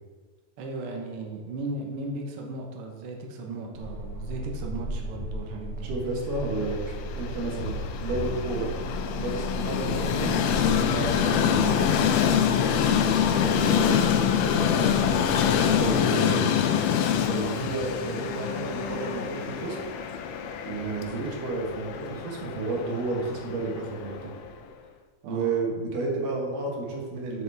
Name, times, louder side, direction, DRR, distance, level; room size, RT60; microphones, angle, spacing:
voice 1, 0.6-5.9 25.2-25.6, right 2 dB, 60° right, 0 dB, 1.6 m, -36 dB
sound 1, 3.7-15.9, right 1 dB, 10° right, 1.8 m, -36 dB
voice 2, 5.8-8.7 9.2-12.0 13.0-14.1 14.4-16.5 17.2-19.8 20.6-24.3 25.2-27.4, right 3 dB, 85° right, -1 dB, 3.1 m, -32 dB
Train, 6.4-24.5, left 8 dB, 85° left, 1.5 m, -26 dB
8.6 x 7.0 x 3.5 m, 1.5 s
omnidirectional pair, 3.7 m